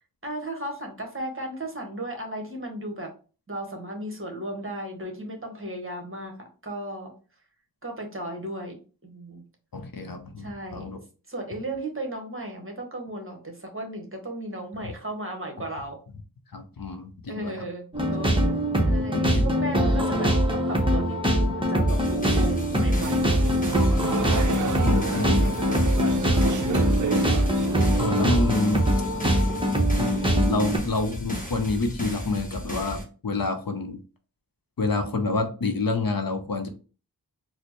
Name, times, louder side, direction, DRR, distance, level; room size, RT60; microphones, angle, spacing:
voice 1, 0.2-3.1 3.5-7.1 7.8-9.4 10.4-10.9 11.3-16.0 17.3-23.3 26.6-27.4, right 1 dB, 30° right, 2 dB, 1.0 m, -36 dB
voice 2, 9.7-11.0 16.5-17.6 19.1-20.0 24.8-25.8 27.2-27.4 28.0-28.9 30.0-34.0 34.8-36.7, left 3 dB, 55° left, 6 dB, 0.6 m, -28 dB
sound 1, 17.9-30.8, equal, 10° right, 0.8 m, -23 dB
sound 2, 21.9-33.0, equal, 20° left, 1.1 m, -35 dB
sound 3, 23.0-28.0, right 5 dB, 50° right, 0.5 m, -31 dB
4.2 x 2.1 x 3.0 m, 0.36 s
wide cardioid pair, 50°, 41 cm